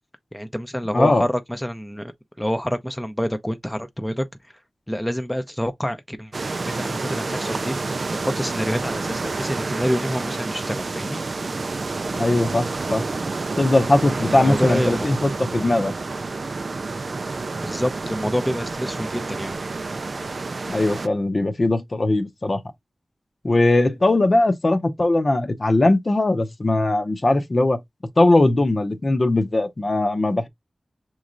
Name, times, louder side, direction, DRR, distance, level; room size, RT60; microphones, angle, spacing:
voice 1, 0.3-2.1 2.4-4.2 4.9-6.3 6.6-11.2 14.3-15.1 17.6-19.5, equal, 5° left, 0.6 m, -27 dB
voice 2, 0.9-1.3 12.1-13.0 13.6-15.9 20.7-22.6 23.4-27.8 28.2-30.5, left 2 dB, 45° left, 0.7 m, -20 dB
sound 1, 6.3-21.1, right 3 dB, 60° right, 0.4 m, -29 dB
6.2 x 3.1 x 2.5 m
wide cardioid pair, 60°, 0 cm